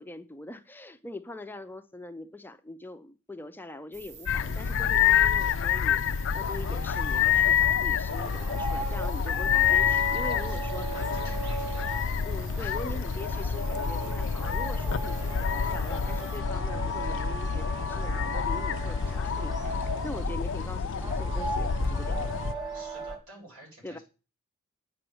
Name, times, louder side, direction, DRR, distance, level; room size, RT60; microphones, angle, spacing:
voice 1, 0.0-10.9 12.2-22.4 23.8-24.0, left 1 dB, 10° left, 0.5 m, -42 dB
sound 1, 3.9-16.4, right 6 dB, 50° right, 0.8 m, -47 dB
sound 2, 4.3-22.5, left 7 dB, 60° left, 0.4 m, -28 dB
sound 3, 6.4-23.2, right 2 dB, 20° right, 2.2 m, -38 dB
voice 2, 10.9-12.0 12.6-12.9 13.4-13.5 22.7-24.0, right 1 dB, 75° right, 7.3 m, -50 dB
9.0 x 6.0 x 7.8 m
head